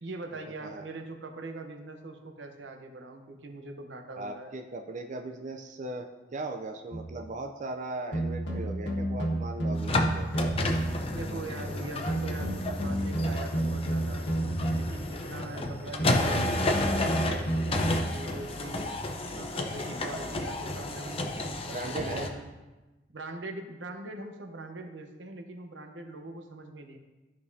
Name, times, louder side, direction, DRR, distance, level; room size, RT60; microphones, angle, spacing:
voice 1, 0.0-4.6 11.1-14.3 14.7-18.8 19.3-22.5 23.1-27.0, right 2 dB, 85° right, 5 dB, 0.9 m, -42 dB
voice 2, 4.2-10.5 19.4-19.7 20.2-20.3 21.7-22.3, right 2 dB, 45° right, 4 dB, 0.5 m, -38 dB
sound 1, 6.9-7.2 8.1-11.1 12.1-15.0 16.0-18.2, right 1 dB, 90° left, 1.5 m, -31 dB
sound 2, 9.7-22.3, left 2 dB, 35° left, 0.7 m, -32 dB
13.5 x 5.3 x 2.7 m, 1.2 s
head